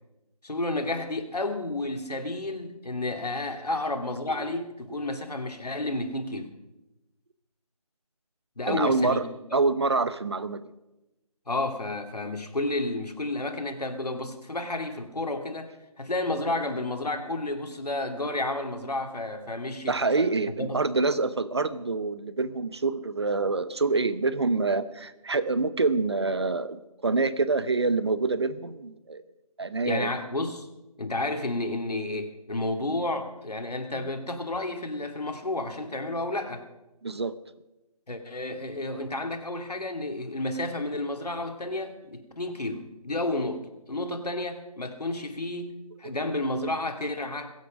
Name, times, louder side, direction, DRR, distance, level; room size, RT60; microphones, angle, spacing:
voice 1, 0.4-6.5 8.6-9.2 11.5-20.3 20.6-20.8 29.8-30.7 31.0-36.6 38.1-47.5, left 2 dB, 90° left, 4 dB, 2.6 m, -31 dB
voice 2, 4.3-4.7 8.7-9.2 9.5-10.6 19.9-29.2 29.6-30.1 33.9-34.1 37.0-37.3, right 3 dB, 45° right, 14 dB, 0.8 m, -26 dB
22.0 x 8.4 x 5.3 m, 0.99 s
figure-of-eight pair, 170°, 20 cm